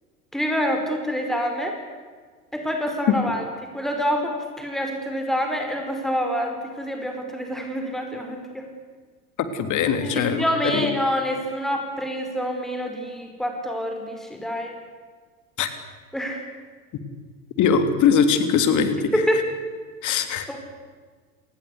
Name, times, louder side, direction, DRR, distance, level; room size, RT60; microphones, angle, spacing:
voice 1, 0.3-1.8 2.5-3.4 3.7-8.7 10.0-14.8 16.1-16.4 19.1-19.5 20.5-20.6, equal, ahead, 3 dB, 4.7 m, -26 dB
voice 2, 9.5-10.9 15.6-15.7 17.6-19.1 20.0-20.6, left 6 dB, 40° left, 9 dB, 3.4 m, -21 dB
30.0 x 19.5 x 8.4 m, 1.5 s
figure-of-eight pair, 80°, 45 cm